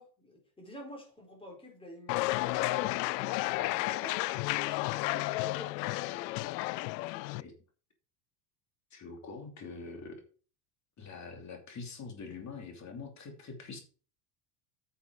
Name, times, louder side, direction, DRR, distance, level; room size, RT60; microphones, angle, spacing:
voice 1, 0.0-4.2 4.6-6.4, equal, 10° left, 1 dB, 4.5 m, -49 dB
sound 1, 2.1-7.4, left 20 dB, 80° left, 0.7 m, -32 dB
voice 2, 8.9-10.2 11.0-13.8, left 4 dB, 35° left, 4 dB, 2.8 m, -44 dB
9.7 x 7.0 x 4.7 m, 0.39 s
supercardioid pair, 125°, 49 cm